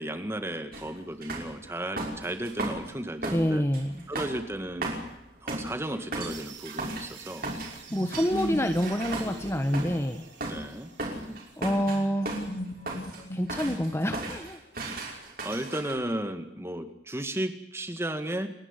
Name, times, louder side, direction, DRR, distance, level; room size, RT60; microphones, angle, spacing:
voice 1, 0.0-3.6 4.1-5.0 5.4-7.5 10.5-10.9 11.2-11.5 15.4-18.5, right 1 dB, 15° right, 8 dB, 1.9 m, -34 dB
sound 1, 0.7-0.9 1.2-2.9 3.2-10.1 10.4-10.7 11.0-12.5 12.9-13.2 13.5-15.9, right 2 dB, 50° right, 5.7 m, -36 dB
voice 2, 3.3-4.1 7.9-10.2 11.6-12.3 13.3-14.6, equal, 15° left, 7 dB, 1.1 m, -27 dB
sound 2, 6.3-11.9, right 9 dB, 90° right, 3.5 m, -51 dB
sound 3, 7.9-10.5 11.9-14.3, equal, 45° left, 2.8 m, -38 dB
29.5 x 11.0 x 9.9 m, 0.85 s
head